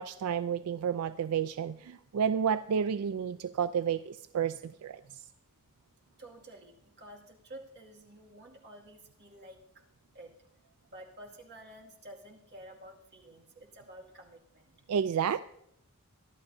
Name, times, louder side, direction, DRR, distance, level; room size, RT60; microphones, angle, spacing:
voice 1, 0.0-5.0 14.9-15.4, right 7 dB, 80° right, 13 dB, 0.4 m, -31 dB
voice 2, 6.2-9.6 10.1-10.3 10.9-14.7, right 1 dB, 50° right, 0 dB, 2.2 m, -51 dB
23.0 x 12.0 x 2.7 m, 0.79 s
head